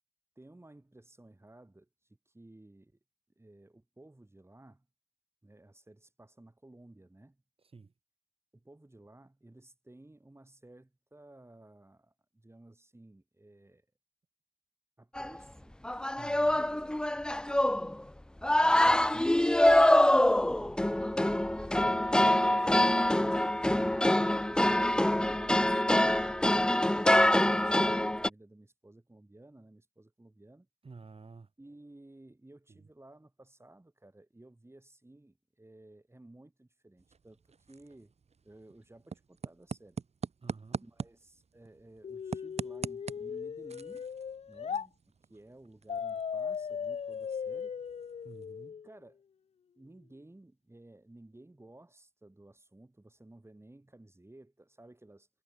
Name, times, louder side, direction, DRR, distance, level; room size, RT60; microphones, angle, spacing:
voice 1, 0.4-3.0 3.4-4.9 5.4-7.4 8.5-13.9 15.0-15.8 16.6-17.1 17.4-18.0 18.7-19.5 20.5-23.2 24.5-30.7 31.6-38.1 38.4-40.0 40.8-44.1 44.5-47.8 48.8-49.2 49.8-55.3, right 1 dB, 25° right, 3.5 m, -56 dB
voice 2, 7.6-7.9 16.1-16.6 18.8-19.5 30.8-31.5 32.7-32.9 40.4-40.8 48.2-48.8, right 4 dB, 60° right, 1.6 m, -51 dB
sound 1, 15.2-15.4 15.8-18.0 18.4-28.3, left 1 dB, 10° left, 0.3 m, -25 dB
sound 2, 37.0-48.7, right 5 dB, 90° right, 1.9 m, -45 dB
sound 3, 42.0-44.9 45.9-48.9, left 7 dB, 75° left, 0.4 m, -38 dB
wide cardioid pair, 60°, 11 cm